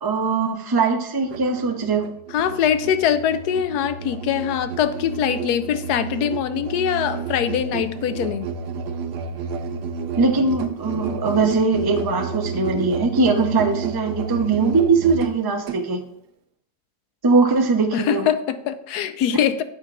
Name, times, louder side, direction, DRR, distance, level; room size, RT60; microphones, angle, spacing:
voice 1, 0.0-2.0 10.2-16.0 17.2-18.3, right 4 dB, 25° right, 3 dB, 0.5 m, -20 dB
Musical instrument, 1.2-15.8, right 5 dB, 75° right, 1.3 m, -31 dB
voice 2, 2.3-8.5 17.9-19.6, left 9 dB, 75° left, 12 dB, 1.1 m, -23 dB
10.0 x 7.4 x 2.5 m, 0.72 s
omnidirectional pair, 1.8 m